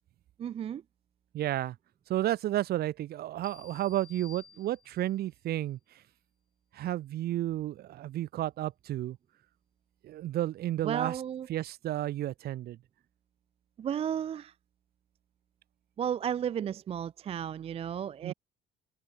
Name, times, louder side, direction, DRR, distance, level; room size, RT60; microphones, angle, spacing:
voice 1, 0.4-0.8 10.8-11.5 13.8-14.5 16.0-18.3, right 9 dB, 35° right, 0.4 m, -33 dB
voice 2, 1.3-1.8 2.1-5.8 6.7-9.2 10.0-11.2 11.5-12.8 18.2-18.3, right 14 dB, 70° right, 2.1 m, -32 dB
sound 1, 3.4-5.2, left 5 dB, 30° left, 3.5 m, -54 dB
cardioid pair, 110°, 17 cm